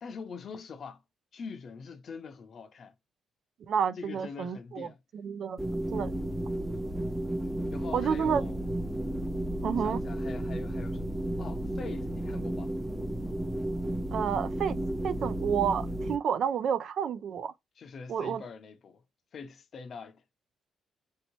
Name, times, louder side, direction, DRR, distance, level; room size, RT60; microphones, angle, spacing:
voice 1, 0.0-1.0 1.3-2.9 4.0-5.0 7.7-8.6 9.7-12.7 17.8-19.0 19.3-20.2, left 5 dB, 55° left, 0.6 m, -44 dB
voice 2, 3.7-4.9 5.2-5.6 5.9-6.1 7.9-8.4 9.6-10.0 14.1-14.8 15.0-17.5 18.1-18.4, right 7 dB, 65° right, 0.3 m, -30 dB
sound 1, 5.6-16.2, right 1 dB, 5° right, 0.5 m, -33 dB
3.0 x 2.8 x 3.0 m
cardioid pair, 90°, 0 cm